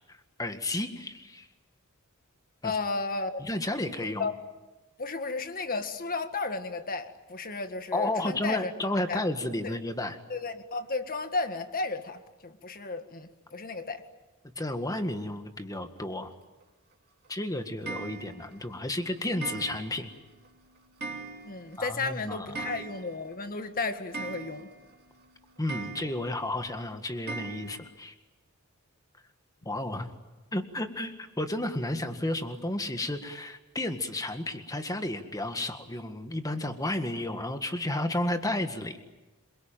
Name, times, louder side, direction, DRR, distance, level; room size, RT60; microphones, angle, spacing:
voice 1, 0.1-1.5 2.6-2.7 3.4-4.3 7.9-10.2 14.6-16.3 17.3-20.1 21.8-22.7 25.6-28.1 29.7-30.1 30.5-39.0, left 1 dB, 15° left, 7 dB, 1.8 m, -32 dB
voice 2, 2.6-3.5 4.2-4.3 5.0-8.7 9.1-9.2 9.6-9.7 10.3-14.0 21.5-24.7, left 3 dB, 40° left, 8 dB, 1.8 m, -33 dB
Clock, 17.9-18.6 19.4-20.2 20.5-20.6 21.0-21.8 22.0-22.1 22.4-23.3 23.6-23.7 24.1-24.9 25.7-26.4 27.3-27.8, right 3 dB, 45° right, 2.7 m, -39 dB
27.0 x 23.0 x 9.1 m, 1.1 s
head